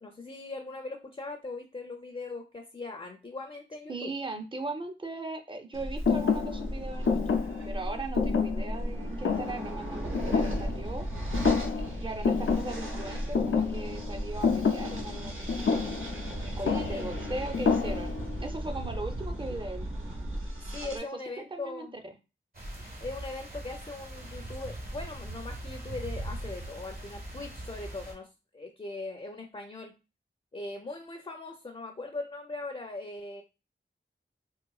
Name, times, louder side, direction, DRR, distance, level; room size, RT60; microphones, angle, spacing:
voice 1, 0.0-4.1 16.6-17.1 20.7-21.9 23.0-28.3 28.5-29.9 30.5-33.4, left 3 dB, 30° left, 3 dB, 0.5 m, -40 dB
voice 2, 3.9-11.1 12.0-15.9 16.4-18.1 18.4-19.9 20.8-21.1 21.5-21.9, right 2 dB, 25° right, 5 dB, 0.6 m, -39 dB
sound 1, 5.7-21.0, equal, 80° right, 0.9 m, -36 dB
Thump thud, 6.1-11.1 11.3-12.0 12.2-18.4, left 5 dB, 85° left, 0.5 m, -29 dB
sound 2, 22.5-28.1, right 1 dB, 50° right, 0.9 m, -40 dB
3.8 x 2.5 x 2.3 m, 0.29 s
wide cardioid pair, 70°, 21 cm